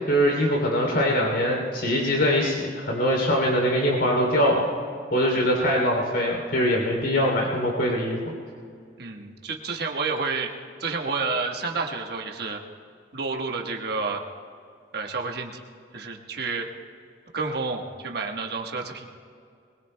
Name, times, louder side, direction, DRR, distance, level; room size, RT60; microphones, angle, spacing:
voice 1, 0.1-4.6 5.1-8.2, equal, 85° left, -1 dB, 3.1 m, -22 dB
voice 2, 9.0-10.5 10.8-12.6 13.1-14.2 14.9-15.6 15.9-16.7 17.3-19.1, right 4 dB, 60° right, 2 dB, 1.3 m, -30 dB
22.5 x 21.5 x 2.2 m, 2.3 s
head